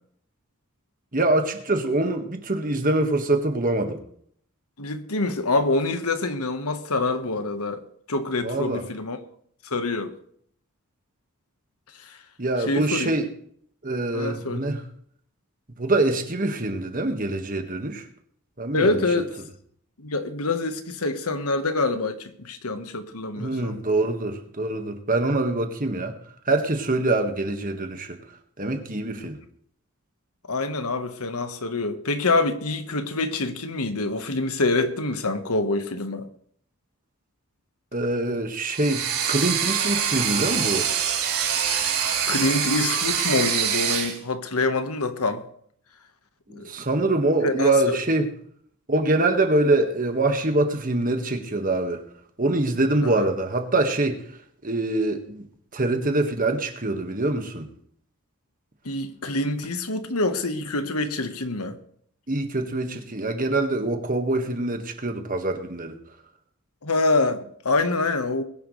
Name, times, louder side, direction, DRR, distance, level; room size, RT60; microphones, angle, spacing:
voice 1, 1.1-4.0 8.4-8.8 12.4-13.3 13.8-14.8 15.8-18.0 18.6-19.0 23.4-26.1 26.5-28.1 28.6-29.4 37.9-40.9 46.5-48.3 48.9-52.0 52.4-54.2 54.6-55.4 55.7-57.7 62.3-66.0, right 2 dB, 40° right, 1.7 m, -24 dB
voice 2, 4.8-9.2 9.6-10.1 12.0-12.2 12.7-13.1 14.1-14.6 18.7-19.3 20.0-23.8 29.2-29.3 30.5-36.3 42.3-45.4 46.5-46.7 47.4-48.0 53.0-53.3 58.8-61.8 66.8-68.4, left 2 dB, 80° left, 1.4 m, -26 dB
sound 1, 38.7-44.2, right 8 dB, 90° right, 3.7 m, -25 dB
21.0 x 10.5 x 3.3 m
head